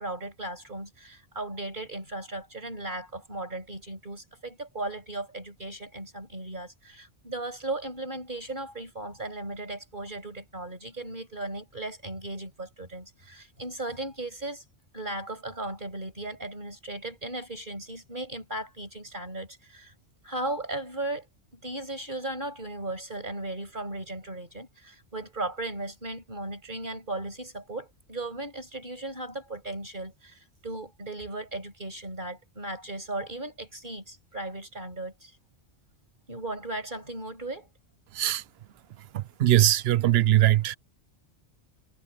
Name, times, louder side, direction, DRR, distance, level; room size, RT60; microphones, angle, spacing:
voice 1, 0.0-14.6 14.9-19.9 20.2-21.3 21.5-35.3 36.3-37.7, right 2 dB, 45° right, 6.4 m, -36 dB
voice 2, 39.1-40.7, right 14 dB, 70° right, 0.8 m, -21 dB
omnidirectional pair, 1.2 m